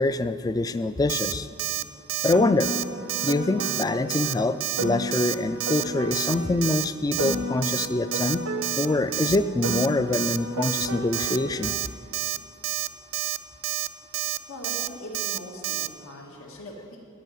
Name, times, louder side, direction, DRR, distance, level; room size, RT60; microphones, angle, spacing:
voice 1, 0.0-1.5 2.2-2.7 3.2-8.4 8.8-11.7, left 2 dB, 20° left, 13 dB, 0.3 m, -25 dB
Alarm, 1.1-1.3 1.6-1.8 2.1-2.3 2.6-2.8 3.1-3.3 3.6-3.8 4.1-4.3 4.6-4.8 5.1-5.4 5.6-5.8 6.1-6.3 6.6-6.9 7.1-7.4 7.6-7.9 8.1-8.4 8.6-8.9 9.1-9.4 9.6-9.9 10.1-10.4 10.6-10.9 11.1-11.4 11.6-11.9 12.1-12.4 12.6-12.9 13.1-13.4 13.6-13.9 14.1-14.4 14.6-14.9 15.1-15.4 15.6-15.9, right 13 dB, 70° right, 0.4 m, -29 dB
Piano, 2.3-6.8 7.2-11.8, left 1 dB, 85° right, 1.0 m, -33 dB
voice 2, 14.5-17.0, equal, 80° left, 0 dB, 1.9 m, -40 dB
16.5 x 5.5 x 9.2 m, 2.4 s
head